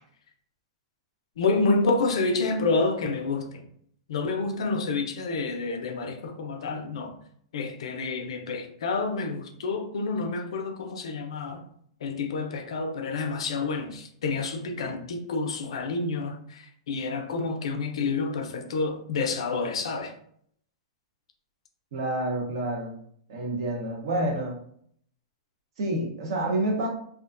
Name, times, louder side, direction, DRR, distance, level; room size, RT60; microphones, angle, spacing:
voice 1, 1.4-3.6 4.1-7.1 7.5-11.6 12.0-20.1 24.2-24.3, left 3 dB, 80° left, 0.4 m, -28 dB
voice 2, 21.9-23.0 23.3-24.5 25.8-26.9, right 1 dB, 65° right, 0.8 m, -28 dB
2.4 x 2.1 x 2.4 m
hypercardioid pair, 150°, 3 cm